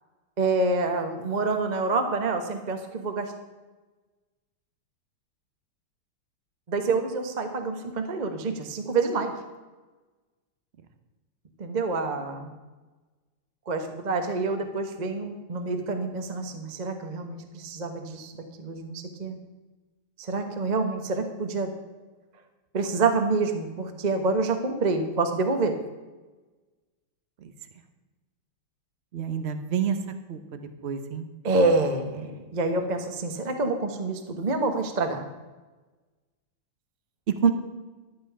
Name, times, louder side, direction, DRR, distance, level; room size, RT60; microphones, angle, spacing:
voice 1, 0.4-3.3 6.7-9.3 11.6-12.5 13.7-18.3 18.6-19.4 20.2-21.7 22.7-25.8 31.4-35.2, right 3 dB, 30° right, 6 dB, 0.8 m, -27 dB
voice 2, 29.1-30.0 30.3-31.2 37.3-37.5, right 7 dB, 85° right, 8 dB, 0.5 m, -27 dB
12.5 x 5.5 x 8.5 m, 1.2 s
omnidirectional pair, 2.4 m